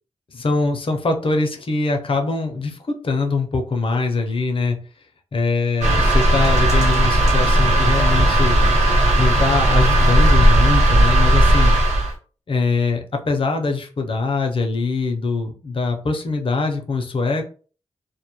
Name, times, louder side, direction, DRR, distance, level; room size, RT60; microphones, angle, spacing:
voice 1, 0.3-2.8 3.0-4.8 5.3-8.6 9.2-11.7 12.5-17.5, left 3 dB, 50° left, 4 dB, 0.6 m, -22 dB
sound 1, 5.8-12.1, right 1 dB, 70° right, 1.0 m, -15 dB
2.2 x 2.1 x 2.9 m, 0.39 s
cardioid pair, 60°, 12 cm